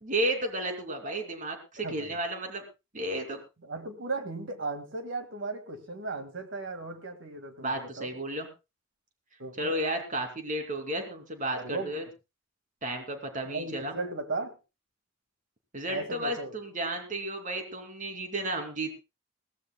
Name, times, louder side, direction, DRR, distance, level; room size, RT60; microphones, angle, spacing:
voice 1, 0.0-2.6 2.9-3.4 7.6-8.5 9.6-12.0 12.8-14.0 15.7-18.9, right 1 dB, 40° right, 4 dB, 2.8 m, -33 dB
voice 2, 1.8-2.2 3.6-8.1 9.4-9.8 11.6-12.0 13.5-14.6 15.9-16.5, right 3 dB, 70° right, 8 dB, 2.0 m, -36 dB
21.0 x 16.5 x 2.3 m, 0.28 s
head